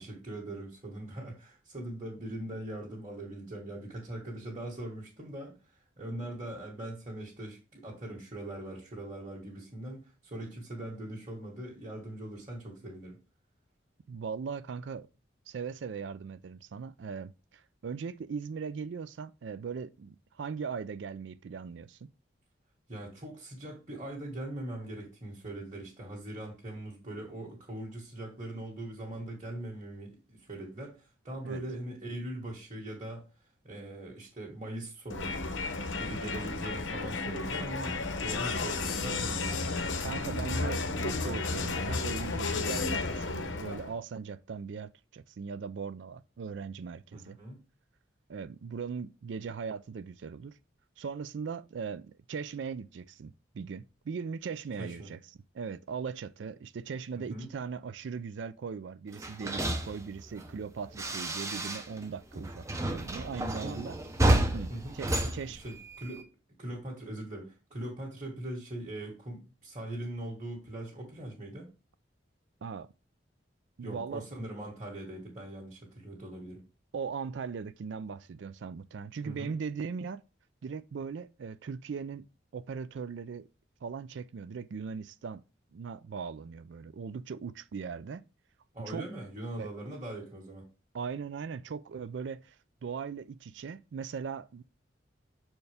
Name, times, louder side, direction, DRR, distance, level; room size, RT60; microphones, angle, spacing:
voice 1, 0.0-13.2 22.9-35.4 36.0-39.6 47.1-47.6 54.8-55.1 57.1-57.5 63.6-63.9 64.7-66.3 66.6-71.7 73.8-76.6 79.2-79.6 88.7-90.7, right 1 dB, 30° right, 1.7 m, -41 dB
voice 2, 14.1-15.1 15.5-22.1 31.4-31.6 40.0-47.4 48.3-50.5 51.0-55.2 55.5-64.0 64.5-65.6 72.6-72.9 73.8-74.3 76.9-80.2 80.6-82.2 82.5-83.5 83.8-85.4 85.7-88.2 88.9-89.0 89.6-89.7 90.9-92.6 92.8-94.6, right 6 dB, 70° right, 0.4 m, -39 dB
Crowd, 35.1-43.9, left 3 dB, 75° left, 0.9 m, -33 dB
sound 1, 59.1-62.1 62.3-66.2, right 1 dB, 15° right, 0.5 m, -31 dB
6.6 x 4.5 x 3.4 m
head